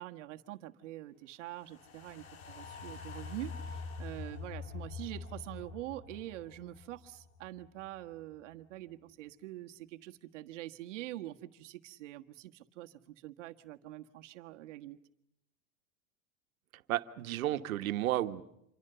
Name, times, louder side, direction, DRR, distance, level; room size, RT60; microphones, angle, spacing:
voice 1, 0.0-15.0, right 15 dB, 60° right, 5 dB, 1.6 m, -45 dB
sound 1, 1.6-8.0 8.3-8.4, left 4 dB, 90° left, 2.9 m, -45 dB
voice 2, 16.7-18.4, right 14 dB, 85° right, 9 dB, 1.6 m, -33 dB
27.5 x 23.5 x 6.9 m, 0.78 s
supercardioid pair, 175°, 41 cm